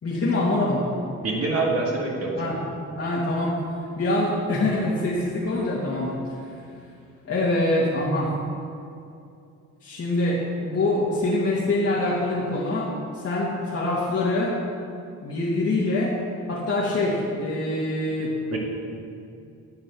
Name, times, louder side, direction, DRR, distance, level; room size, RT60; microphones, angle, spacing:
voice 1, 0.0-0.8 2.4-2.6 3.0-3.5 4.0-6.4 7.3-8.3 9.8-14.6 15.2-16.2 16.5-18.3, left 2 dB, 50° left, -7 dB, 2.2 m, -24 dB
voice 2, 1.2-2.4 18.5-18.6, right 3 dB, 50° right, -3 dB, 2.5 m, -25 dB
10.5 x 7.9 x 6.3 m, 2.5 s
cardioid pair, 85°, 31 cm